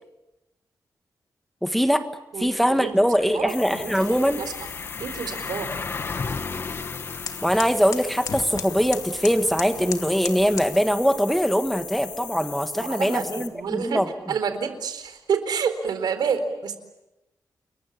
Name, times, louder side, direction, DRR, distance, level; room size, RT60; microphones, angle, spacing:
voice 1, 1.6-2.0 2.4-4.4 7.4-14.1, equal, ahead, 8 dB, 1.5 m, -22 dB
voice 2, 2.3-3.0 3.3-4.5 5.0-5.7 12.7-16.8, right 6 dB, 85° right, 9 dB, 4.0 m, -29 dB
sound 1, 2.4-2.5 2.8-12.6 13.0-13.1 15.9-16.0, left 4 dB, 35° left, 1.4 m, -37 dB
sound 2, 3.5-13.5, left 7 dB, 85° left, 2.5 m, -39 dB
sound 3, 4.0-10.8, left 6 dB, 60° left, 2.3 m, -38 dB
30.0 x 22.5 x 8.6 m, 0.97 s
wide cardioid pair, 155°, 7 cm